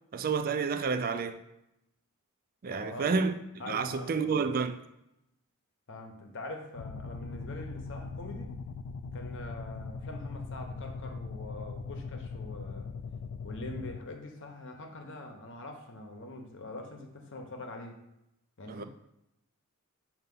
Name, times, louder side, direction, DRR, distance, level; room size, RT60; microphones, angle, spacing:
voice 1, 0.1-1.4 2.6-3.3 3.7-4.8 18.7-18.8, right 5 dB, 40° right, 0.4 m, -29 dB
voice 2, 2.7-3.1 3.6-4.4 5.9-8.5 9.1-12.9 13.4-18.0 18.6-18.8, left 2 dB, 55° left, 0.9 m, -44 dB
sound 1, 6.8-14.0, left 4 dB, 75° left, 0.3 m, -40 dB
6.6 x 2.8 x 5.4 m
head